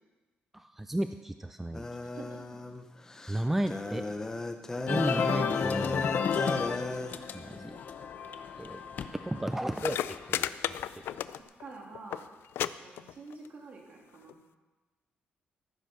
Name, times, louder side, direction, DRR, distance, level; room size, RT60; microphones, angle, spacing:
voice 1, 0.5-1.9 3.3-4.1 4.9-6.1 7.3-7.8 8.6-8.8 9.2-10.5 11.0-11.1, right 1 dB, 5° right, 9 dB, 0.4 m, -33 dB
sound 1, 1.7-7.1, left 2 dB, 15° left, 0.9 m, -36 dB
voice 2, 2.0-2.6 3.8-4.4 4.8-5.4 11.3-12.2 12.8-14.4, right 3 dB, 45° right, -1 dB, 3.0 m, -48 dB
sound 2, 4.9-11.2, left 6 dB, 50° left, 0.8 m, -33 dB
sound 3, 9.5-9.6 9.7-11.7 11.9-12.2 12.6-12.7 13.0-13.5 14.3-14.4, left 11 dB, 85° left, 0.4 m, -33 dB
15.0 x 8.3 x 6.3 m, 1.2 s
cardioid pair, 150°, 4 cm